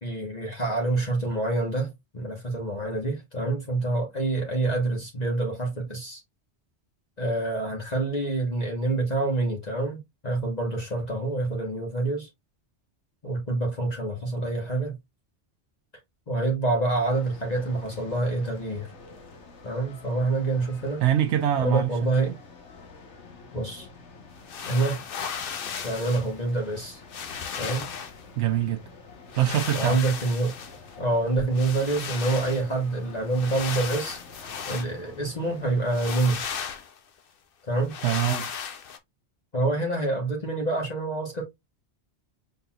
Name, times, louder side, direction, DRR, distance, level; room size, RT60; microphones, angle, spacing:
voice 1, 0.0-6.2 7.2-12.3 13.2-14.9 16.3-18.9 19.6-21.0 21.6-22.3 23.5-23.9 24.6-25.0 25.8-27.0 27.6-27.8 29.7-30.5 31.0-34.2 34.7-36.4 37.7-37.9 39.5-41.4, right 2 dB, 40° left, 1.3 m, -27 dB
sound 1, 17.0-36.4, left 4 dB, 85° left, 1.4 m, -48 dB
voice 2, 21.0-21.9 22.2-22.4 28.4-28.8 29.3-30.0 38.0-38.5, right 11 dB, 80° right, 0.9 m, -24 dB
sound 2, 24.4-26.3 26.8-26.9 27.1-28.2 29.3-30.9 31.5-32.7 33.3-34.9 35.9-37.0 37.9-39.0, left 7 dB, 55° left, 0.9 m, -35 dB
5.7 x 3.9 x 2.3 m
omnidirectional pair, 1.2 m